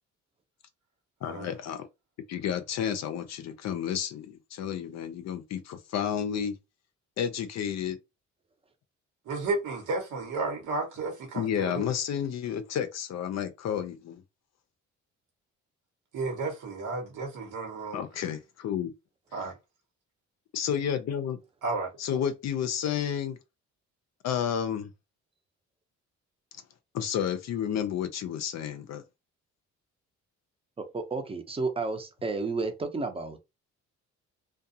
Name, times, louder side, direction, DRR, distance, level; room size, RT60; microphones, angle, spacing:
voice 1, 1.2-1.9 2.3-6.6 7.2-8.0 11.4-14.2 17.9-18.9 20.5-21.4 22.0-23.4 24.2-24.9 26.9-29.0, left 9 dB, 60° left, 0.5 m, -31 dB
voice 2, 9.3-11.8 16.1-18.0 19.3-19.5 21.6-21.9, right 3 dB, 80° right, 1.0 m, -32 dB
voice 3, 30.8-33.4, right 3 dB, 20° right, 0.6 m, -32 dB
2.4 x 2.3 x 2.7 m
cardioid pair, 90°, 30 cm